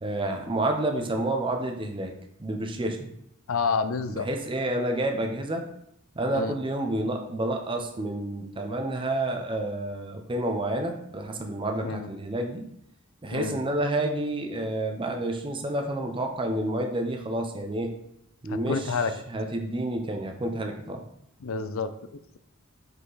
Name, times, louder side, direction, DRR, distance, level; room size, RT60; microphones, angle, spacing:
voice 1, 0.0-2.1 2.4-3.1 4.1-5.7 6.1-12.7 13.2-18.0 18.4-19.0 19.3-21.0, right 1 dB, 25° right, 4 dB, 0.7 m, -29 dB
voice 2, 3.5-4.3 6.3-6.5 11.8-12.1 13.3-13.6 18.5-19.1 21.4-21.9, left 5 dB, 70° left, 11 dB, 0.5 m, -28 dB
5.9 x 5.4 x 4.0 m, 0.73 s
head